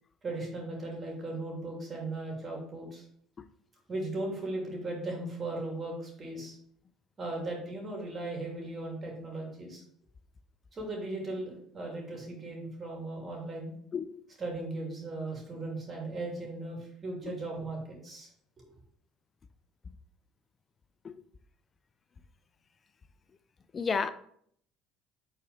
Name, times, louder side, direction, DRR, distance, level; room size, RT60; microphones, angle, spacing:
voice 1, 0.2-3.0 3.9-6.6 7.2-9.8 10.7-13.7 14.4-18.3 18.6-18.7, right 2 dB, 30° right, 2.7 m, -37 dB
voice 2, 13.9-14.2 21.0-21.1 23.7-24.1, left 5 dB, 30° left, 0.5 m, -31 dB
5.6 x 4.1 x 4.8 m
supercardioid pair, 105°, 0 cm